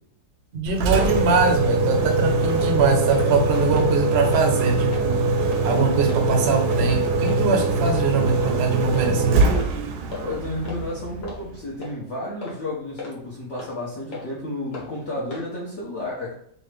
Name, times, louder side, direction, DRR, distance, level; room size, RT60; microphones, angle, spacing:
voice 1, 0.5-5.2 5.6-9.4, right 4 dB, 55° right, 3 dB, 0.7 m, -22 dB
Engine, 0.7-11.6, right 3 dB, 75° right, 1.0 m, -22 dB
sound 1, 2.0-2.1 2.5-2.7 3.1-3.3 3.6-4.0 4.3-4.5 4.9-5.1 5.5-5.6 6.1-6.2 6.7-6.8 7.3-7.4 7.9-8.0 8.4-8.6 9.0-9.1 9.5-9.7 10.1-10.2 10.6-10.8 11.2-11.4 11.8-12.0 12.4-12.6 13.0-13.1 13.6-13.7 14.1-14.3 14.7-14.9 15.3-15.5, left 4 dB, 70° left, 1.6 m, -35 dB
voice 2, 10.2-16.3, left 1 dB, 50° left, -6 dB, 1.1 m, -32 dB
4.2 x 2.6 x 3.3 m, 0.68 s
omnidirectional pair, 1.8 m